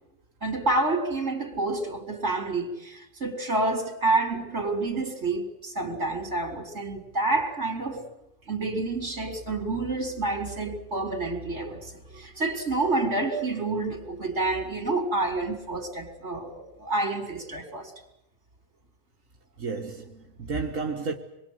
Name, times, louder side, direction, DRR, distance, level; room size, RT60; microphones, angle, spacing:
voice 1, 0.4-8.1 8.5-17.9, right 2 dB, 60° right, 4.4 m, -28 dB
voice 2, 19.6-21.2, right 4 dB, 85° right, 2.1 m, -32 dB
27.5 x 22.0 x 8.1 m
omnidirectional pair, 1.3 m